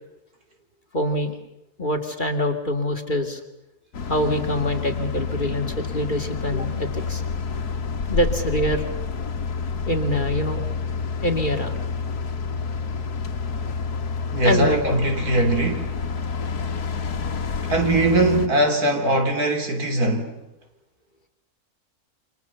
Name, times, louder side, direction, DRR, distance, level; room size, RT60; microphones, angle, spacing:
voice 1, 0.9-1.4 1.8-3.4 4.1-7.2 8.1-8.9 9.9-10.6 11.2-11.7 14.4-14.8, left 1 dB, 30° left, 2.6 m, -24 dB
sound 1, 3.9-18.5, left 5 dB, 80° left, 2.0 m, -29 dB
voice 2, 14.3-16.0 17.7-20.4, right 2 dB, 75° right, 3.8 m, -21 dB
29.5 x 26.5 x 7.1 m
omnidirectional pair, 1.6 m